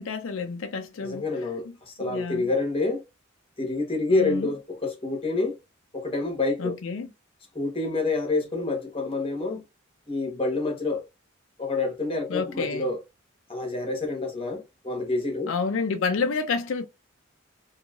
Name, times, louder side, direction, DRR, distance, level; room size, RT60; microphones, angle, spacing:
voice 1, 0.0-1.2 1.7-1.8 2.0-2.5 4.1-4.5 6.6-7.1 12.3-12.9 15.5-16.8, left 5 dB, 75° left, 0.5 m, -29 dB
voice 2, 1.0-3.0 3.6-5.5 5.9-6.8 7.5-9.6 10.1-11.0 11.6-13.0 13.5-15.5, left 3 dB, 25° left, 0.9 m, -27 dB
3.0 x 2.7 x 2.3 m
head